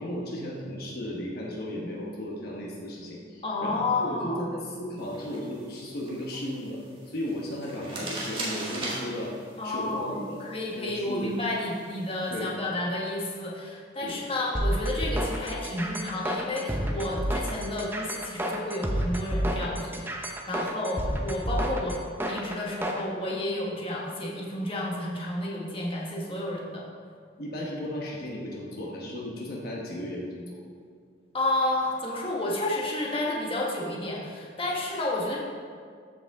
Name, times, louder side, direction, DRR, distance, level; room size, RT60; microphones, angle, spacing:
voice 1, 0.0-6.8 7.1-9.4 9.6-10.4 10.7-11.4 12.3-12.5 14.0-14.2 20.5-20.6 27.4-30.6, equal, 50° left, -3 dB, 1.1 m, -35 dB
voice 2, 3.4-4.4 9.6-20.1 20.5-22.0 22.2-26.9 31.3-35.4, left 2 dB, 30° left, -3 dB, 1.2 m, -31 dB
sound 1, 5.0-12.4, right 2 dB, 25° right, 1.8 m, -41 dB
sound 2, 14.5-23.0, equal, 10° right, 0.6 m, -30 dB
13.5 x 5.2 x 3.5 m, 2.1 s
head